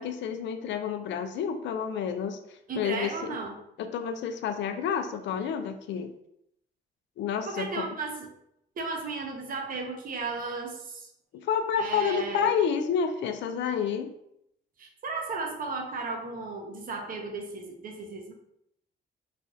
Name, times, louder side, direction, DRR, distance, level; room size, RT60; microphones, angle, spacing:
voice 1, 0.0-2.4 2.8-3.4 3.8-6.1 7.2-7.9 11.3-14.1, left 7 dB, 70° left, 8 dB, 0.4 m, -29 dB
voice 2, 2.7-3.5 7.4-8.3 8.8-11.1 11.8-12.5 14.8-18.3, right 4 dB, 45° right, 1 dB, 0.7 m, -35 dB
3.2 x 2.3 x 2.7 m, 0.77 s
cardioid pair, 90°, 20 cm